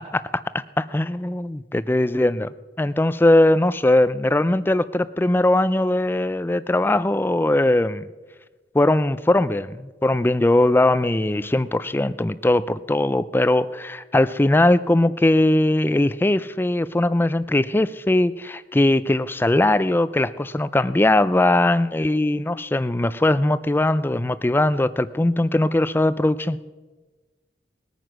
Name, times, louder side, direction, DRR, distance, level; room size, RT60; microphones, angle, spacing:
voice 1, 0.1-8.1 8.7-26.6, left 1 dB, 10° left, 16 dB, 0.4 m, -20 dB
20.0 x 9.2 x 6.2 m, 1.2 s
head